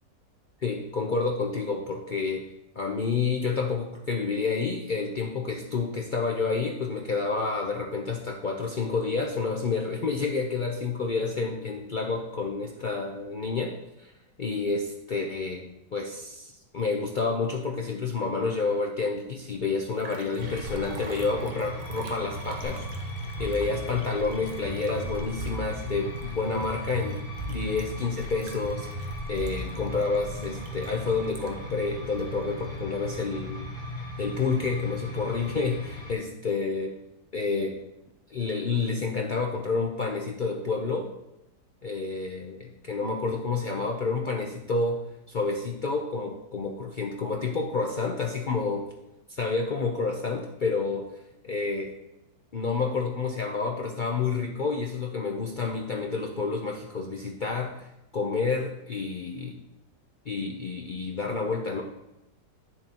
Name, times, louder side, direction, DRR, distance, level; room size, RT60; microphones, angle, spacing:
voice 1, 0.6-2.4 2.8-14.1 14.4-15.7 15.9-22.9 23.4-27.2 27.5-33.7 34.2-36.9 37.3-37.8 38.3-41.1 41.8-45.0 45.3-48.9 49.3-51.1 51.4-51.9 52.5-57.9 58.1-59.6 60.3-61.8, left 4 dB, 75° left, 0 dB, 0.4 m, -29 dB
Liquid, 19.5-19.6 19.8-31.7 32.2-32.3, right 2 dB, 75° right, 1.6 m, -46 dB
sound 1, 20.4-36.1, equal, 35° left, 2.8 m, -38 dB
sound 2, 22.6-30.6, right 1 dB, 35° right, 2.6 m, -39 dB
10.5 x 6.9 x 2.9 m, 0.93 s
omnidirectional pair, 1.8 m